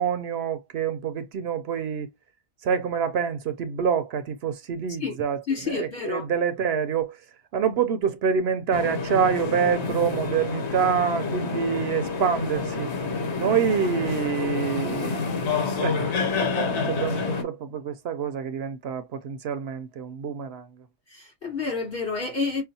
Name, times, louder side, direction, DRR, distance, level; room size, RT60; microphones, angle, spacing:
voice 1, 0.0-2.1 2.6-7.2 7.5-12.9 13.4-15.3 15.8-16.2 16.8-20.7, right 7 dB, 70° right, 0.8 m, -26 dB
voice 2, 5.5-6.2 21.1-22.6, left 4 dB, 55° left, 3.0 m, -29 dB
sound 1, 8.7-17.4, left 4 dB, 75° left, 1.1 m, -28 dB
5.6 x 2.0 x 2.7 m
omnidirectional pair, 1.1 m